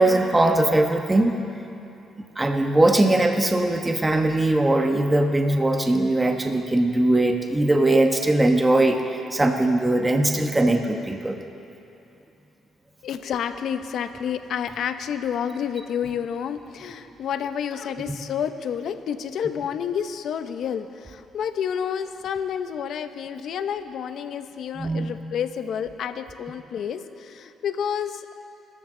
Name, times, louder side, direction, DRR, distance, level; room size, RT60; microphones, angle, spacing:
voice 1, 0.0-1.3 2.4-11.4 24.8-25.2, right 2 dB, 15° right, 4 dB, 1.1 m, -20 dB
voice 2, 13.0-28.3, left 8 dB, 70° left, 10 dB, 0.8 m, -29 dB
25.5 x 13.0 x 3.9 m, 2.8 s
cardioid pair, 90°, 0 cm